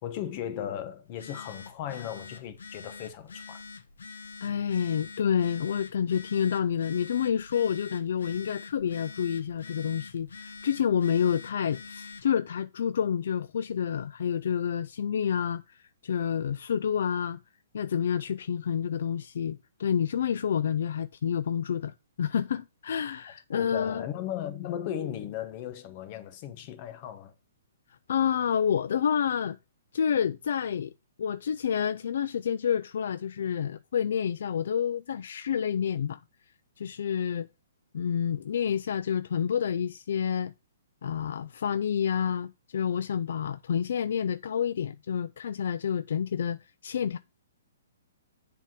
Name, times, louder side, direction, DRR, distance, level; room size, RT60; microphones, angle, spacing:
voice 1, 0.0-3.6 23.5-27.3, left 10 dB, 35° left, 1.1 m, -36 dB
Telephone, 1.1-12.3, left 5 dB, 90° left, 1.0 m, -46 dB
voice 2, 4.4-17.4 17.7-24.0 28.1-29.6 29.9-30.9 31.2-36.2 36.8-37.5 37.9-40.5 41.0-47.2, left 8 dB, 65° left, 0.3 m, -29 dB
7.4 x 3.5 x 5.9 m
hypercardioid pair, 155°, 0 cm